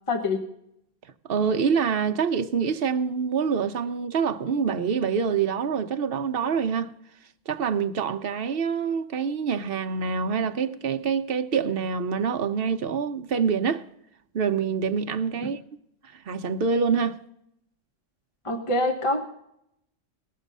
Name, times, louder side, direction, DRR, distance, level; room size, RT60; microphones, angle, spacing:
voice 1, 0.1-0.4 15.4-15.5 18.4-19.3, left 2 dB, 30° left, 1.1 m, -25 dB
voice 2, 1.3-6.9 7.5-13.8 14.3-15.6 16.1-17.2, right 6 dB, 55° right, 0.8 m, -26 dB
18.5 x 7.2 x 5.3 m
omnidirectional pair, 1.2 m